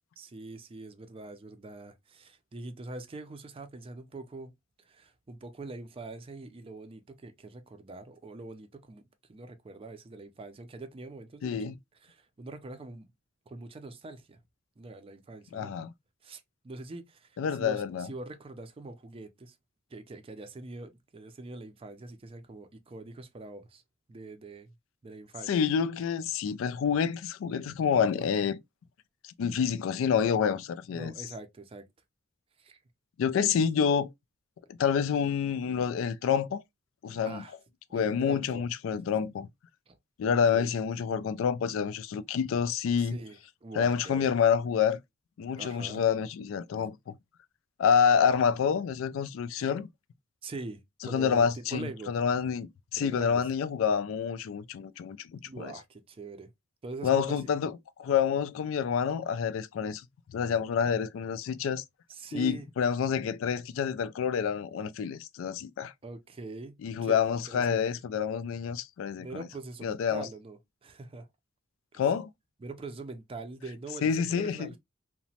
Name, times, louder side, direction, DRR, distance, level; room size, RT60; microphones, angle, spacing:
voice 1, 0.2-4.5 4.9-9.0 9.3-11.7 12.0-13.1 13.5-14.4 14.8-15.7 16.2-19.6 19.9-23.8 24.1-24.7 25.0-25.5 28.1-28.3 30.9-31.8 32.6-32.8 37.2-37.6 37.9-38.6 39.9-40.0 40.3-40.7 43.0-44.4 45.6-46.0 48.2-48.3 50.4-52.1 53.0-53.5 55.4-56.5 56.8-57.5 62.1-62.7 66.0-67.2 67.5-68.0 69.2-71.3 71.9-72.1 72.6-74.8, right 3 dB, 30° right, 0.4 m, -43 dB
voice 2, 11.4-11.7 15.5-15.9 17.4-18.1 25.5-28.6 29.4-31.1 33.2-34.1 34.8-36.6 37.0-37.4 37.9-39.5 40.2-43.2 43.8-45.0 45.4-47.1 47.8-49.9 51.1-55.7 57.0-57.7 58.0-60.0 60.3-61.8 62.3-65.9 66.8-69.4 69.8-70.2 72.0-72.3 74.0-74.7, left 7 dB, 90° left, 0.3 m, -28 dB
2.9 x 2.1 x 2.7 m
head